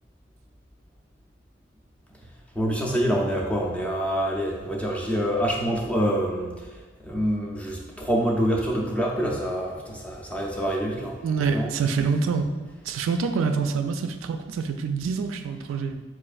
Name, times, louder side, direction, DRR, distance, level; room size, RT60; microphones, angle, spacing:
voice 1, 2.5-11.7, equal, 5° left, -2 dB, 0.5 m, -26 dB
voice 2, 11.2-12.5 12.9-16.0, right 5 dB, 75° right, 8 dB, 0.3 m, -26 dB
5.0 x 2.4 x 2.4 m, 1.3 s
head